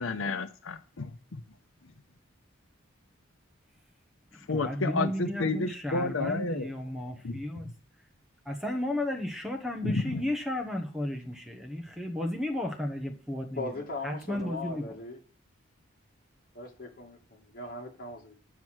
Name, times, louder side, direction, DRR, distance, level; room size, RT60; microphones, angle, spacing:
voice 1, 0.0-1.4 4.5-6.7 7.2-7.4 9.8-10.2, left 3 dB, 85° left, 10 dB, 0.7 m, -31 dB
voice 2, 4.3-7.7 8.4-13.7 14.0-14.9, left 1 dB, 5° right, 4 dB, 1.2 m, -34 dB
voice 3, 13.5-15.2 16.5-18.4, left 2 dB, 45° left, 1 dB, 2.3 m, -39 dB
9.1 x 5.9 x 6.3 m, 0.37 s
head